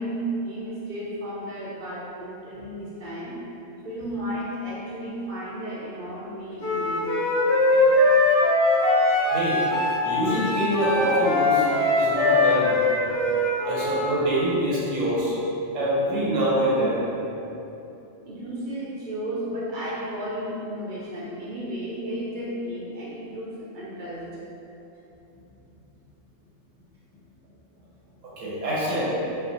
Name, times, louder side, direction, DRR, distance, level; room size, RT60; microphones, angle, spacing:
voice 1, 0.0-3.4 3.8-7.1 18.3-24.5, right 1 dB, 50° right, -7 dB, 0.6 m, -33 dB
Wind instrument woodwind instrument, 6.6-14.1, left 2 dB, 65° left, 1.2 m, -21 dB
voice 2, 9.2-9.6 10.0-11.7 11.9-12.7 13.6-15.3 15.7-17.0 28.2-29.2, right 1 dB, 80° right, -7 dB, 1.3 m, -25 dB
3.9 x 2.5 x 2.7 m, 3.0 s
omnidirectional pair, 1.3 m